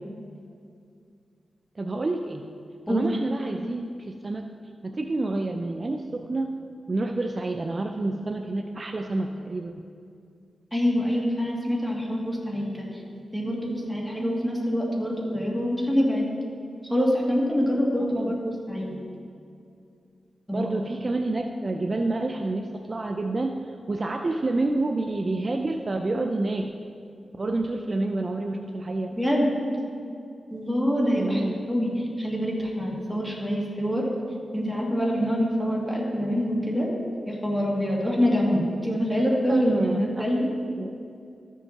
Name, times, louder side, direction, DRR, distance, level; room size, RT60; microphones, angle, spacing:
voice 1, 1.8-2.4 2.9-4.4 4.8-6.5 6.9-9.8 18.2-18.3 20.5-26.8 27.4-29.1 31.2-31.6 38.5-38.6 39.5-40.5 40.7-41.0, right 2 dB, 40° right, 5 dB, 0.4 m, -28 dB
voice 2, 10.7-13.0 13.3-16.3 16.8-19.0 20.5-20.7 29.2-29.6 30.5-31.4 31.7-34.0 34.5-36.9 37.2-40.5, equal, ahead, -4 dB, 2.3 m, -25 dB
13.5 x 7.1 x 2.9 m, 2.4 s
cardioid pair, 65°, 0 cm